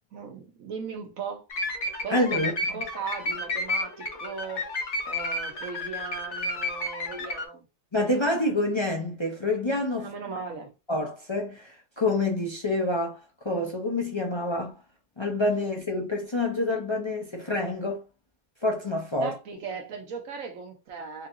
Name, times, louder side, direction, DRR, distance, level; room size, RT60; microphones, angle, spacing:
voice 1, 0.1-1.4 2.0-4.6 5.1-7.6 9.9-10.7 19.2-21.3, right 5 dB, 70° right, 1.3 m, -37 dB
sound 1, 1.5-7.4, left 2 dB, 60° left, 1.3 m, -31 dB
voice 2, 2.1-2.5 7.9-10.1 10.9-13.2 13.4-14.8 15.2-18.0 18.6-19.3, left 2 dB, 40° left, 0.4 m, -27 dB
3.8 x 2.8 x 2.5 m
omnidirectional pair, 1.4 m